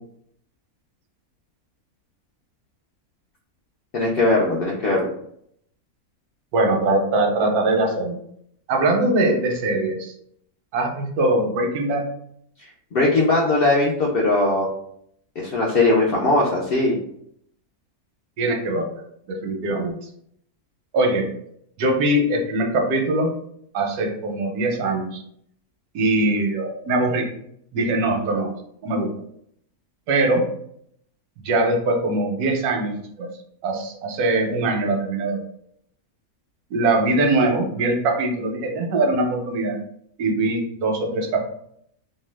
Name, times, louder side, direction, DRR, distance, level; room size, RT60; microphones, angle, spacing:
voice 1, 3.9-5.1 12.6-14.7 15.4-17.0, left 2 dB, 70° left, -4 dB, 0.5 m, -20 dB
voice 2, 6.5-8.2 8.7-10.1 10.7-12.1 18.4-19.0 19.3-20.0 20.9-21.3 21.8-23.3 23.7-25.2 25.9-27.3 27.7-28.5 28.8-29.1 30.1-30.5 31.4-33.3 33.6-35.4 36.7-39.8 40.2-41.4, right 2 dB, 85° right, 2 dB, 1.2 m, -22 dB
2.7 x 2.2 x 3.2 m, 0.70 s
omnidirectional pair, 1.6 m